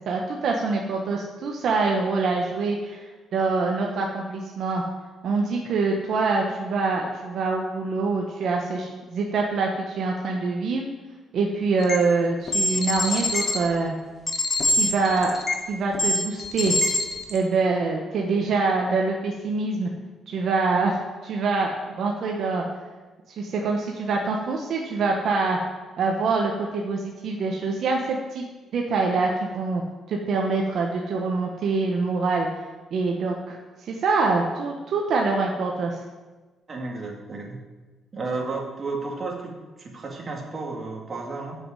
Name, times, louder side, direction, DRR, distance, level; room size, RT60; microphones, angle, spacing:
voice 1, 0.1-4.8 5.2-10.9 11.3-14.0 14.7-15.4 15.7-16.8 17.3-19.9 20.3-21.0 21.2-22.6 23.4-25.6 26.0-28.4 28.7-29.8 30.1-32.5 32.9-33.6 33.8-36.0, right 3 dB, 65° right, 0 dB, 1.1 m, -25 dB
sound 1, 11.8-12.0 12.5-13.6 14.3-15.6 15.9-17.4, left 2 dB, 40° left, 1.6 m, -24 dB
voice 2, 36.7-37.6 38.1-41.6, right 3 dB, 35° right, 0 dB, 2.3 m, -32 dB
7.6 x 6.6 x 7.4 m, 1.3 s
cardioid pair, 90°, 0 cm